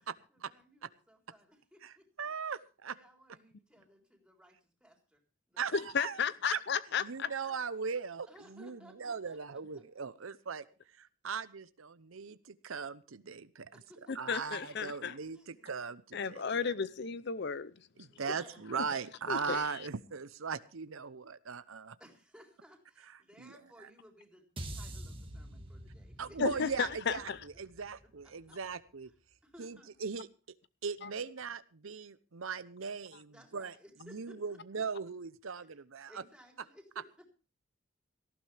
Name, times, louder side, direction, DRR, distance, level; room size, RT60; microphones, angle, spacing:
voice 1, 0.3-2.3 2.9-5.2 5.5-5.9 6.2-6.4 7.2-7.7 8.3-9.9 13.7-15.7 18.1-18.6 19.3-19.5 22.0-26.8 27.8-27.9 28.2-28.3 29.4-29.9 33.3-34.8 36.1-37.2, equal, 5° right, 3.8 m, -59 dB
voice 2, 1.8-3.0 5.6-6.6 7.0-10.6 10.9-13.8 14.1-16.7 18.0-22.0 23.4-23.6 26.2-29.1 29.6-30.3 30.8-33.7 34.0-36.2, right 5 dB, 80° right, 0.8 m, -39 dB
voice 3, 5.7-7.3 14.1-15.1 16.1-17.7 19.3-19.7 26.4-27.4 31.0-31.1, left 6 dB, 55° left, 0.6 m, -33 dB
sound 1, 24.6-28.9, right 1 dB, 25° right, 1.7 m, -47 dB
18.0 x 15.0 x 3.3 m
head